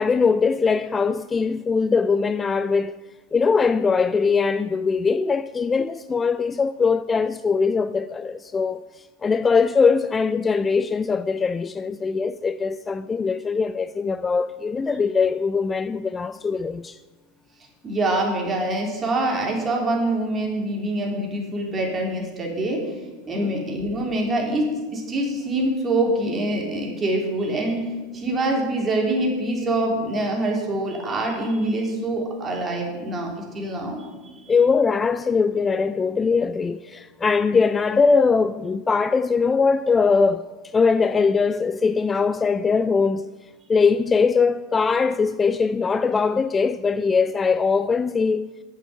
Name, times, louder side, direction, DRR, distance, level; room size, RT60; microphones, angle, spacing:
voice 1, 0.0-3.0 3.3-17.0 23.3-23.5 34.5-40.5 40.7-43.3 43.7-48.5, left 5 dB, 20° left, 0.3 m, -21 dB
voice 2, 17.8-24.7 24.9-34.4, right 1 dB, 25° right, 3.5 m, -25 dB
8.9 x 6.9 x 7.9 m
hypercardioid pair, 100°, 0 cm